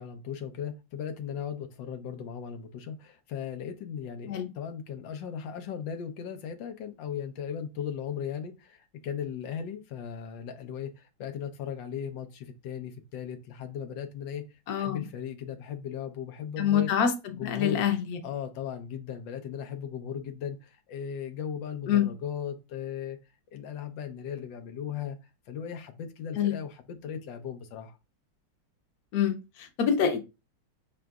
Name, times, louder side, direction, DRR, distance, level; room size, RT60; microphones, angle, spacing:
voice 1, 0.0-14.4 14.8-16.9 17.4-17.9 18.2-23.2 23.5-25.2 25.5-28.0, left 8 dB, 85° left, 1.4 m, -37 dB
voice 2, 14.7-15.1 16.6-18.2 21.9-22.1 26.4-26.6 29.1-30.2, left 8 dB, 60° left, 1.2 m, -26 dB
6.1 x 3.8 x 2.3 m
omnidirectional pair, 2.0 m